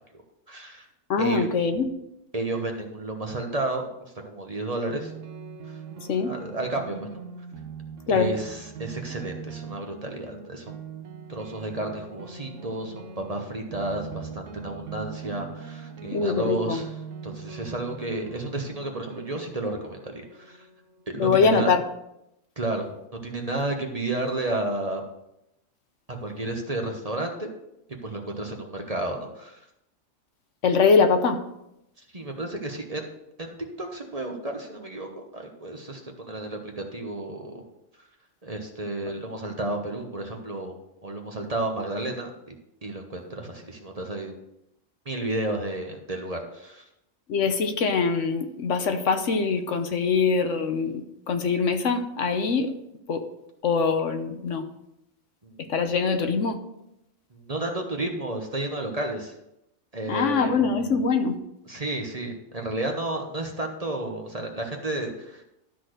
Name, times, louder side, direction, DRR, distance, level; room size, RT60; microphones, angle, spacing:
voice 1, 0.5-0.9 1.2-1.5 2.3-3.9 4.2-5.1 5.6-5.8 6.2-7.0 8.1-10.8 11.3-16.9 17.2-20.7 21.1-21.7 22.6-22.9 23.2-25.0 26.1-27.5 28.0-29.6 32.1-33.1 33.4-37.6 38.4-40.7 41.0-42.5 42.8-44.3 45.0-46.8 55.4-55.7 57.3-59.3 59.9-60.6 61.7-65.4, right 2 dB, 30° right, 2 dB, 1.1 m, -32 dB
voice 2, 1.1-1.9 6.1-6.3 8.1-8.3 16.1-16.8 21.2-21.8 30.6-31.4 47.3-52.7 53.1-53.2 53.6-54.7 55.7-56.6 60.1-61.4, left 5 dB, 65° left, 7 dB, 1.2 m, -23 dB
sound 1, 4.9-21.1, right 5 dB, 70° right, 1.1 m, -41 dB
12.5 x 4.2 x 6.4 m, 0.84 s
omnidirectional pair, 1.4 m